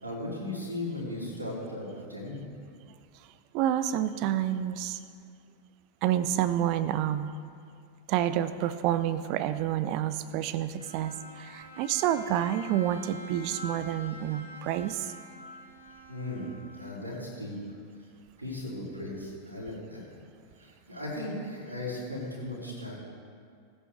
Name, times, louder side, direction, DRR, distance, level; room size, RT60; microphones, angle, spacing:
voice 1, 0.0-2.5 16.1-17.6 18.4-20.0 20.6-22.9, left 1 dB, 85° right, -5 dB, 3.4 m, -37 dB
voice 2, 3.5-5.0 6.0-7.3 8.1-15.1, right 11 dB, 45° right, 13 dB, 0.6 m, -29 dB
Bowed string instrument, 10.8-17.2, equal, 90° left, 1.9 m, -47 dB
19.0 x 8.5 x 3.5 m, 2.3 s
figure-of-eight pair, 90°, 0 cm